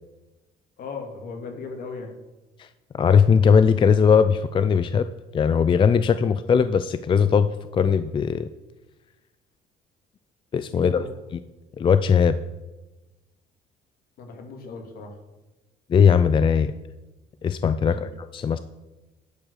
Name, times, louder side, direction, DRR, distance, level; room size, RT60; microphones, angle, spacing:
voice 1, 0.8-2.1 10.7-11.1 14.2-15.2 17.9-18.0, left 4 dB, 60° left, 3 dB, 2.2 m, -37 dB
voice 2, 2.9-5.1 5.3-8.5 10.5-11.4 11.8-12.4 15.9-16.7 17.4-18.6, left 6 dB, 30° left, 12 dB, 0.4 m, -19 dB
11.0 x 5.2 x 6.4 m, 1.1 s
cardioid pair, 110°, 17 cm